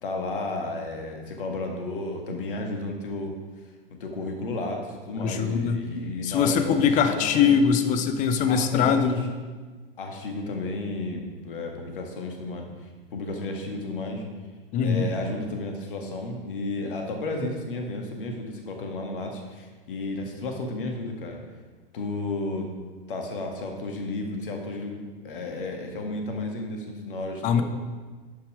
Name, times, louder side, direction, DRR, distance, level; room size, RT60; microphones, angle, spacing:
voice 1, 0.0-3.3 3.9-7.5 8.5-9.3 10.0-12.7 13.1-14.2 14.8-21.4 21.9-22.7 23.1-27.6, left 2 dB, 65° left, 3 dB, 1.8 m, -32 dB
voice 2, 5.2-5.8 6.2-9.2 14.7-15.1 27.4-27.6, left 6 dB, 25° left, 9 dB, 0.8 m, -22 dB
11.0 x 5.8 x 4.8 m, 1.4 s
figure-of-eight pair, 105°, 29 cm